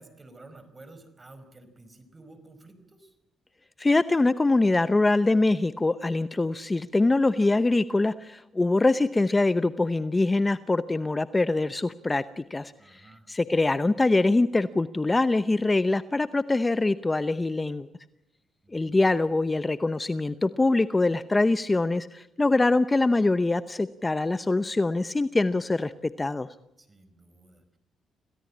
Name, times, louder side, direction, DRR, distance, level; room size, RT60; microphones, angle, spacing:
voice 1, 0.0-3.2 12.8-13.3 18.6-19.3 26.8-27.8, right 2 dB, 25° right, 10 dB, 5.1 m, -52 dB
voice 2, 3.8-17.9 18.7-26.5, left 2 dB, 20° left, 13 dB, 0.8 m, -24 dB
27.5 x 16.5 x 8.6 m, 0.91 s
cardioid pair, 90°, 0 cm